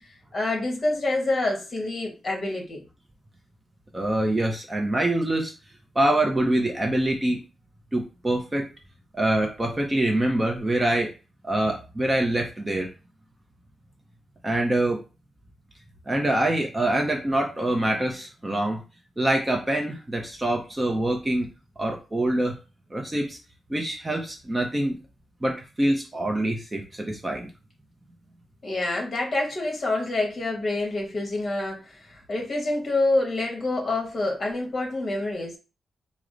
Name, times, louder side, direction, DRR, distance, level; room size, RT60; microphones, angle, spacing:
voice 1, 0.3-2.8 28.6-35.6, left 2 dB, 35° left, 0 dB, 1.3 m, -27 dB
voice 2, 3.9-5.5 6.0-7.4 7.9-8.7 9.1-11.1 11.4-12.9 14.4-15.0 16.1-18.8 19.2-21.5 21.8-22.6 22.9-23.4 23.7-25.0 25.4-27.5, right 1 dB, 15° right, 2 dB, 0.6 m, -25 dB
4.6 x 2.0 x 3.8 m, 0.32 s
wide cardioid pair, 145°, 0 cm